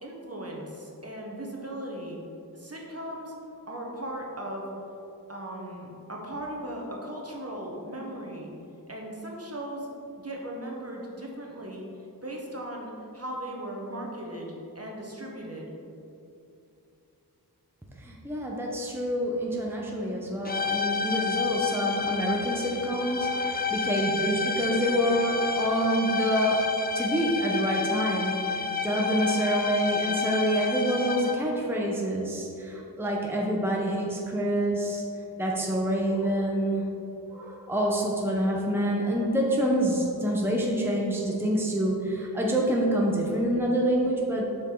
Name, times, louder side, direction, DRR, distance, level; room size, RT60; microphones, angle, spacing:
voice 1, 0.0-2.2 2.5-3.3 3.7-4.7 5.3-8.5 8.9-9.9 10.2-11.9 12.2-15.7, right 1 dB, 40° right, -2 dB, 1.3 m, -37 dB
voice 2, 18.0-35.0 35.3-36.9 37.3-44.5, right 1 dB, 5° right, -2 dB, 0.9 m, -27 dB
sound 1, 20.4-31.6, left 5 dB, 25° left, 0.5 m, -30 dB
7.3 x 5.3 x 3.9 m, 2.8 s
wide cardioid pair, 45°, 39 cm